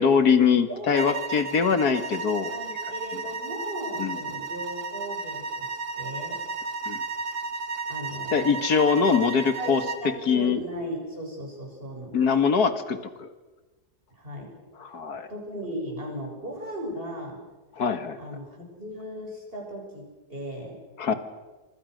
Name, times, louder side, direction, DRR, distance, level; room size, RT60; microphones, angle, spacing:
voice 1, 0.0-2.5 4.0-4.2 6.9-7.0 8.3-9.8 10.3-10.6 12.1-13.3 14.8-15.3 17.8-18.2 21.0-21.1, left 6 dB, 70° left, 10 dB, 2.3 m, -23 dB
voice 2, 0.7-1.1 2.5-6.4 7.9-8.5 9.6-12.2 14.1-14.5 15.3-17.4 18.2-20.8, equal, 35° right, 0 dB, 7.7 m, -37 dB
sound 1, 0.9-10.1, right 4 dB, 80° right, 2.3 m, -33 dB
27.0 x 25.0 x 6.5 m, 1.2 s
omnidirectional pair, 1.7 m